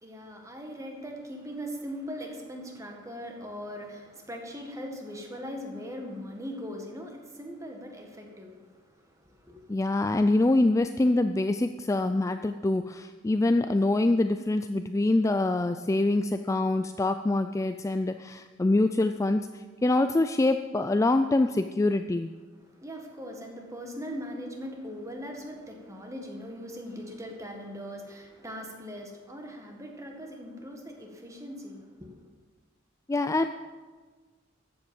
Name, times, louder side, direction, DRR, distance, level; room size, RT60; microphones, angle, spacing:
voice 1, 0.0-9.7 22.6-32.1, equal, 15° right, 2 dB, 1.8 m, -40 dB
voice 2, 9.7-22.3 33.1-33.5, left 2 dB, 15° left, 8 dB, 0.3 m, -25 dB
14.0 x 7.9 x 7.1 m, 1.4 s
head